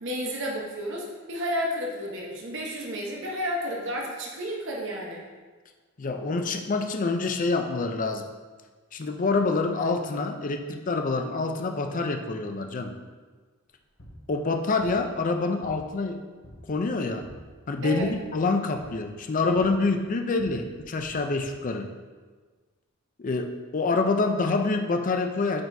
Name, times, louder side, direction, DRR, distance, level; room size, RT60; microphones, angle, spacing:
voice 1, 0.0-5.2 17.8-18.1, equal, 60° right, -2 dB, 1.0 m, -31 dB
voice 2, 6.0-8.3 8.9-13.0 14.3-16.2 16.7-17.2 17.7-21.9 23.2-25.6, left 3 dB, 40° left, 5 dB, 0.5 m, -26 dB
sound 1, 13.7-21.4, equal, 70° left, 1.7 m, -51 dB
8.6 x 4.2 x 2.7 m, 1.4 s
head